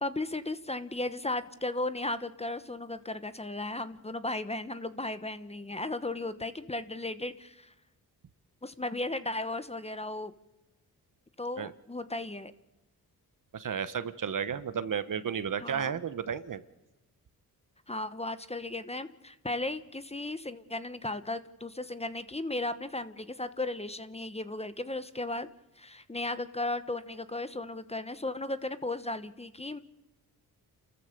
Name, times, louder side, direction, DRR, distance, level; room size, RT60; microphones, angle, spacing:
voice 1, 0.0-7.7 8.6-10.3 11.4-12.5 15.6-15.9 17.9-25.5 25.8-29.8, left 2 dB, 15° left, 12 dB, 1.1 m, -35 dB
voice 2, 13.5-16.6, right 7 dB, 55° right, 13 dB, 1.2 m, -33 dB
28.5 x 14.5 x 6.8 m, 1.0 s
cardioid pair, 70°, 38 cm